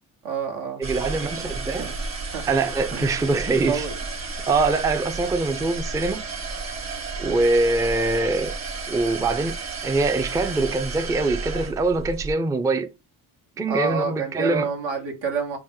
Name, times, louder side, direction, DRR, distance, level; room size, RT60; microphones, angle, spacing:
voice 1, 0.2-1.5 1.8-1.9 2.3-2.4 2.9-3.2 3.7-4.0 13.7-15.6, right 5 dB, 80° right, 1.1 m, -29 dB
voice 2, 0.8-1.9 2.5-3.9 4.5-6.2 7.2-8.5 8.9-9.6 9.8-12.9 13.6-14.7, right 3 dB, 10° right, 0.4 m, -23 dB
sound 1, 0.8-12.3, right 4 dB, 40° right, 1.0 m, -32 dB
3.0 x 2.1 x 3.6 m
supercardioid pair, 55°, 43 cm